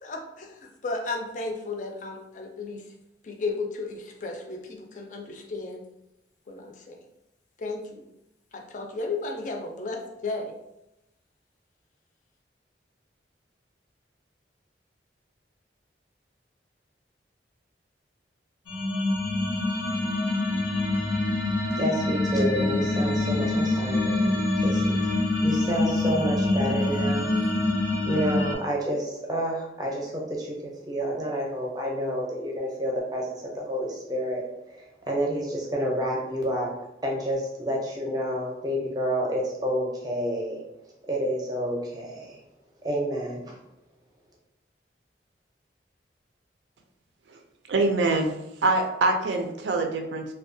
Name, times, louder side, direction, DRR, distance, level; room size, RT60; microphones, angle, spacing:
voice 1, 0.0-2.8 3.2-5.8 6.5-7.0 7.6-8.0 8.5-10.5, left 3 dB, 45° left, 2 dB, 0.4 m, -34 dB
sound 1, 18.7-28.6, left 2 dB, 90° left, 0.7 m, -25 dB
voice 2, 21.8-25.1 25.4-27.3 28.0-36.7 37.0-40.6 41.1-42.4 42.8-43.6, equal, 20° right, -1 dB, 0.5 m, -29 dB
voice 3, 47.7-50.3, right 2 dB, 80° right, 4 dB, 0.4 m, -24 dB
2.7 x 2.2 x 2.6 m, 0.88 s
head